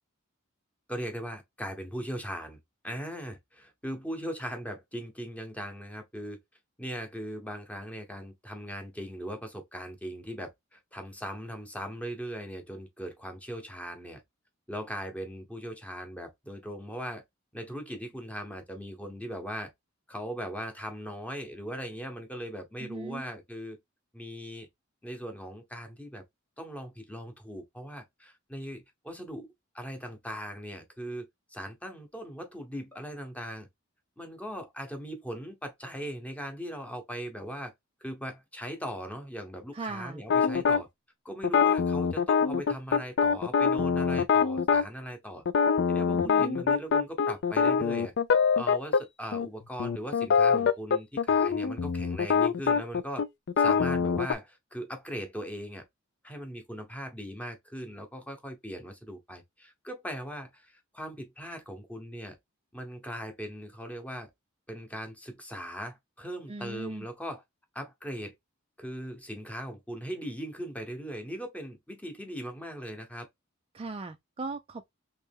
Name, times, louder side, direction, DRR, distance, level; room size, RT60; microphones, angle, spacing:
voice 1, 0.9-6.4 6.8-14.2 14.7-17.2 17.5-19.7 20.1-23.8 24.1-24.7 25.0-26.2 26.6-29.5 29.7-33.7 34.2-37.7 38.0-40.9 41.2-45.4 45.9-48.1 48.6-53.2 53.6-55.8 56.2-62.4 62.7-64.3 64.7-67.4 67.7-68.3 68.8-73.3, equal, 5° left, 0.9 m, -39 dB
voice 2, 22.8-23.2 39.7-40.2 46.1-46.6 66.5-67.0 73.7-74.9, right 3 dB, 30° right, 0.4 m, -38 dB
sound 1, 40.3-40.8 41.4-44.9 45.5-49.0 49.3-49.5 49.8-54.3, left 6 dB, 55° left, 0.4 m, -24 dB
3.3 x 3.1 x 3.4 m
head